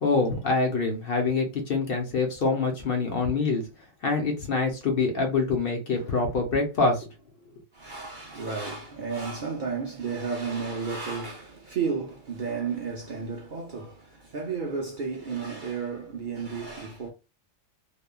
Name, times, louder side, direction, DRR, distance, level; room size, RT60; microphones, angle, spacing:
voice 1, 0.0-3.6 4.0-7.1, left 3 dB, 55° left, 0.8 m, -25 dB
voice 2, 7.7-17.1, right 5 dB, 55° right, 0.6 m, -32 dB
3.0 x 2.2 x 2.2 m
omnidirectional pair, 1.3 m